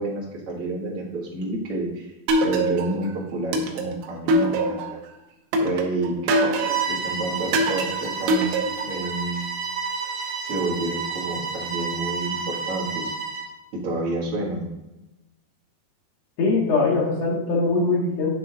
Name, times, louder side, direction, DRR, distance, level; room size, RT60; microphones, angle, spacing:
voice 1, 0.0-2.1 2.4-5.0 5.5-6.1 6.9-8.5 8.8-9.4 10.4-13.1 13.8-14.7, right 2 dB, 50° right, -4 dB, 1.8 m, -29 dB
sound 1, 2.3-3.0 3.5-5.0 5.5-6.9 7.5-9.0, right 1 dB, 80° right, 2.9 m, -23 dB
Bowed string instrument, 6.6-13.5, right 5 dB, 65° right, 2.0 m, -30 dB
voice 2, 16.4-18.4, left 3 dB, 75° left, -4 dB, 1.5 m, -22 dB
9.9 x 3.4 x 3.8 m, 0.96 s
omnidirectional pair, 4.8 m